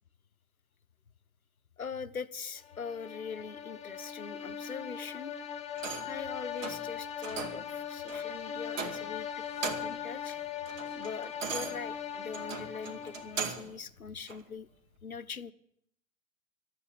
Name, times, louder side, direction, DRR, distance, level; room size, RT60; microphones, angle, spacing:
voice 1, 1.8-5.3 6.1-10.4 10.9-14.7 15.0-15.5, left 6 dB, 90° left, 14 dB, 0.8 m, -42 dB
sound 1, 2.6-13.6, left 8 dB, 15° left, 1.3 m, -40 dB
sound 2, 5.7-6.2 6.6-6.9 7.2-7.7 8.1-8.3 8.7-9.2 9.5-10.0 10.4-13.8 14.3-14.4, right 5 dB, 65° right, 2.0 m, -39 dB
13.0 x 8.4 x 9.7 m, 0.70 s
figure-of-eight pair, 95°, 41 cm